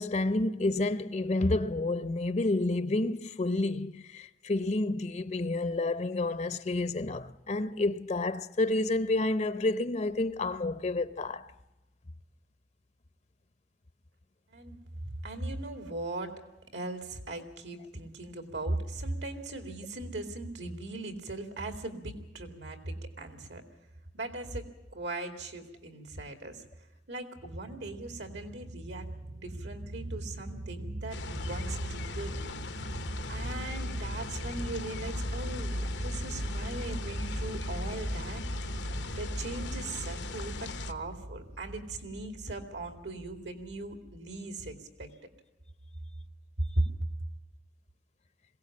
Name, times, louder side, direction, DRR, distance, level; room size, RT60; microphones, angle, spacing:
voice 1, 0.0-11.4, left 2 dB, 40° left, 0.7 m, -29 dB
voice 2, 14.5-16.4 16.7-23.6 24.1-26.7 27.1-32.5 33.3-38.4 39.2-45.1 46.6-46.9, right 2 dB, 80° right, 2.5 m, -38 dB
sound 1, 27.4-44.4, right 1 dB, 40° right, 0.7 m, -38 dB
sound 2, 31.1-40.9, left 3 dB, 85° left, 1.0 m, -40 dB
21.5 x 17.0 x 8.5 m
head